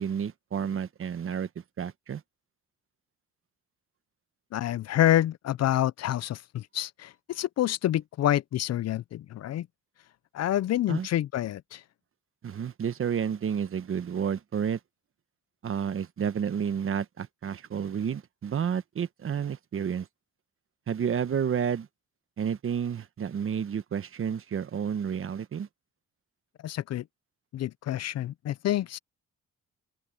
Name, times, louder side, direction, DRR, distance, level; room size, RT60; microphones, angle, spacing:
voice 1, 0.0-1.5 1.8-2.2 10.9-11.1 12.4-14.8 15.6-20.1 20.9-21.9 22.4-25.7, right 7 dB, 45° right, 1.1 m, -30 dB
voice 2, 4.5-9.7 10.3-11.8 26.6-27.0 27.5-29.0, left 12 dB, 60° left, 0.6 m, -27 dB
open air
cardioid pair, 90°, 30 cm